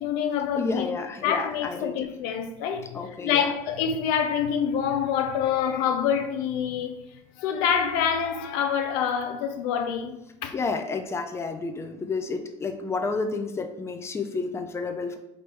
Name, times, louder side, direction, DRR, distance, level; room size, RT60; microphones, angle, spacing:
voice 1, 0.0-0.9 1.2-6.9 7.4-10.5, left 8 dB, 70° left, 0.5 m, -26 dB
voice 2, 0.6-2.1 2.9-3.5 10.5-15.2, left 4 dB, 15° left, 0.4 m, -30 dB
3.3 x 2.6 x 4.5 m
supercardioid pair, 90°, 16 cm